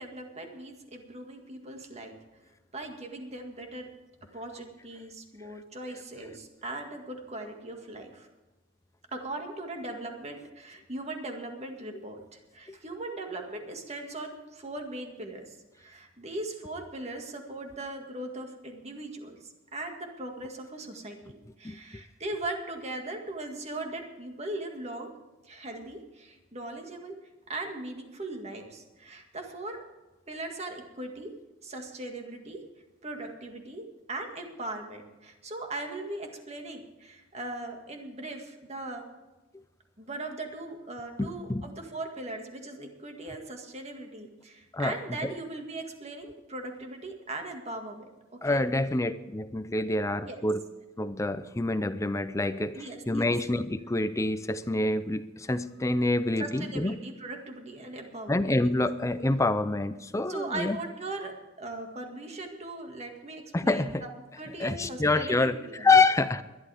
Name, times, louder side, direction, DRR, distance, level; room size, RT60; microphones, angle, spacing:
voice 1, 0.0-2.1 2.7-3.9 4.3-8.3 9.1-25.1 25.4-27.2 27.5-29.8 30.3-31.3 31.6-32.6 33.0-39.0 40.0-48.0 48.5-48.6 50.2-50.4 52.7-53.3 56.4-58.7 60.3-61.3 61.6-64.1 64.4-65.9, right 2 dB, 35° right, 3 dB, 2.0 m, -39 dB
voice 2, 41.2-41.6 44.7-45.0 45.2-45.3 48.4-50.6 51.0-57.0 58.3-60.8 63.5-64.0 64.6-65.6 65.8-66.4, left 2 dB, 15° left, 12 dB, 0.5 m, -26 dB
21.5 x 11.5 x 3.5 m, 1.1 s
head